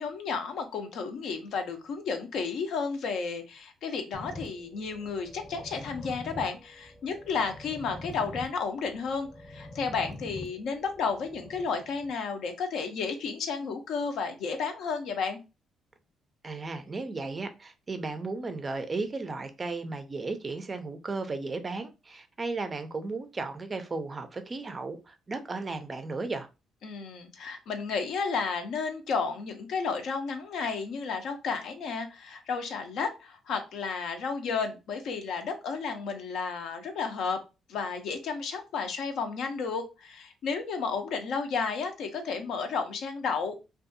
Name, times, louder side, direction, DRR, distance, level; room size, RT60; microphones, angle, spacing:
voice 1, 0.0-15.4 26.8-37.4 37.7-43.5, left 5 dB, 70° left, 0.5 m, -32 dB
sound 1, 4.1-12.1, left 1 dB, 20° left, 0.6 m, -44 dB
voice 2, 16.4-26.5, right 3 dB, 25° right, 0.4 m, -35 dB
2.6 x 2.3 x 2.5 m
cardioid pair, 115°, 0 cm